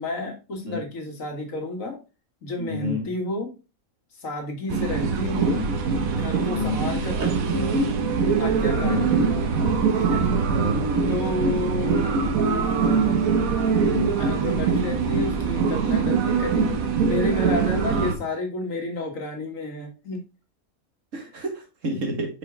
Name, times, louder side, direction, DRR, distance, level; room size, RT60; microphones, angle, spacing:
voice 1, 0.0-2.0 2.4-3.5 4.2-5.6 6.1-7.9 8.4-9.4 9.9-10.3 11.1-12.0 12.6-13.3 14.2-16.7 17.0-20.2 22.0-22.1, left 2 dB, 75° left, 2 dB, 2.0 m, -31 dB
voice 2, 2.6-3.1 5.5-5.7 6.4-6.8 8.8-9.1 10.5-10.8 13.9-14.2 16.6-16.9 21.1-22.3, left 1 dB, 65° right, 2 dB, 2.0 m, -29 dB
sound 1, 4.7-18.2, right 5 dB, 90° right, 1.4 m, -23 dB
5.5 x 4.9 x 3.5 m, 0.30 s
omnidirectional pair, 1.4 m